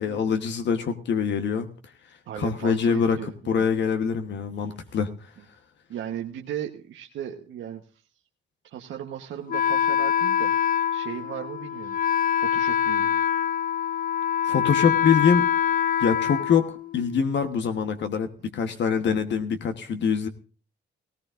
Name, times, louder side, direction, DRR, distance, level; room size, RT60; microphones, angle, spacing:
voice 1, 0.0-1.7 2.4-3.2 3.5-5.1 14.4-15.5 16.0-20.3, left 6 dB, 65° left, 8 dB, 1.3 m, -24 dB
voice 2, 2.3-3.7 5.9-8.0 8.7-12.0 12.4-13.1 18.7-18.8 19.1-19.2, right 10 dB, 75° right, 2 dB, 1.2 m, -36 dB
Wind instrument woodwind instrument, 9.5-17.2, left 9 dB, 45° left, 0.5 m, -24 dB
18.0 x 16.5 x 2.6 m, 0.37 s
cardioid pair, 90°, 20 cm